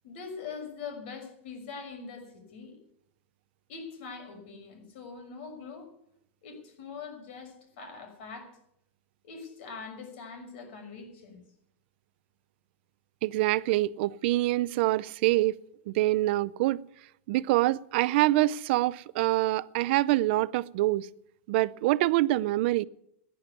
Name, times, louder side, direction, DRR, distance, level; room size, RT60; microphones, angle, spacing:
voice 1, 0.0-2.8 3.7-5.9 6.4-8.6 9.2-11.4, left 5 dB, 65° left, 6.1 m, -43 dB
voice 2, 13.2-15.6 15.9-16.8 17.3-21.1 21.5-22.8, right 17 dB, 60° right, 0.5 m, -25 dB
14.5 x 11.0 x 8.3 m
supercardioid pair, 145°, 7 cm